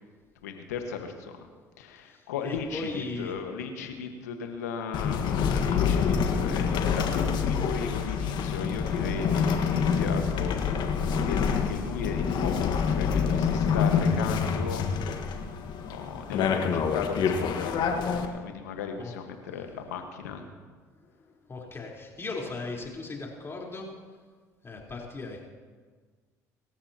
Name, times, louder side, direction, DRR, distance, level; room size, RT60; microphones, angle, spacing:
voice 1, 0.4-1.3 1.8-10.6 11.2-14.9 15.8-20.4, left 6 dB, 85° left, 5 dB, 1.5 m, -36 dB
voice 2, 2.1-3.3 19.0-19.1 20.9-21.1 21.5-23.9 24.6-25.5, left 3 dB, 30° left, -2 dB, 4.1 m, -37 dB
sound 1, 4.9-18.3, left 6 dB, 60° left, 1.6 m, -27 dB
26.0 x 13.5 x 3.0 m, 1.5 s
hypercardioid pair, 65°, 8 cm